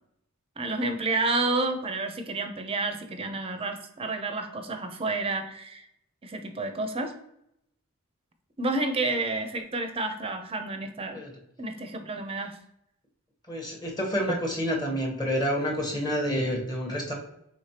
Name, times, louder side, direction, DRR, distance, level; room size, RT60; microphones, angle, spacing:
voice 1, 0.6-5.9 6.2-7.1 8.6-11.2 11.6-12.5, right 2 dB, 25° right, 6 dB, 0.5 m, -30 dB
voice 2, 13.5-17.1, equal, 20° left, -1 dB, 1.0 m, -28 dB
5.0 x 3.5 x 2.8 m, 0.77 s
head